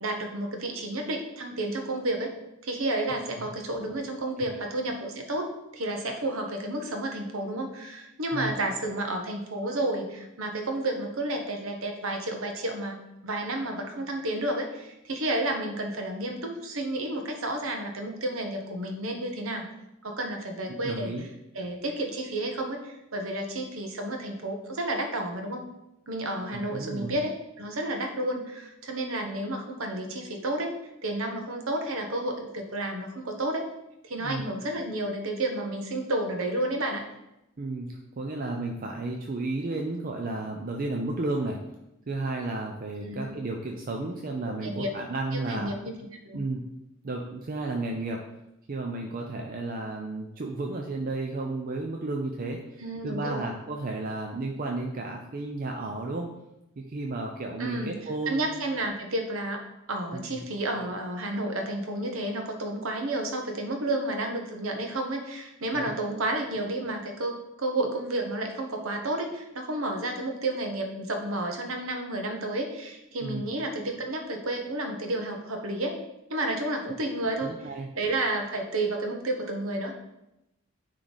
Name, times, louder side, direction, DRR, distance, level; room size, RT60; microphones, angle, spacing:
voice 1, 0.0-2.3 2.6-13.0 13.2-19.7 20.0-21.1 21.5-25.6 26.1-30.7 31.0-33.7 34.0-37.0 43.0-43.3 44.6-44.9 45.3-45.9 46.2-46.4 52.8-53.5 57.6-57.9 58.3-59.6 59.9-76.0 76.3-77.5 77.9-79.9, right 1 dB, 75° right, 4 dB, 1.1 m, -31 dB
voice 2, 20.7-21.3 26.5-27.2 34.2-34.4 37.6-41.6 42.1-45.7 46.3-46.6 47.0-48.2 48.7-56.3 56.8-58.4 60.1-60.4 65.7-66.0 73.2-73.5 77.4-77.9, right 2 dB, 40° right, 1 dB, 0.5 m, -33 dB
9.6 x 3.3 x 4.0 m, 0.90 s
head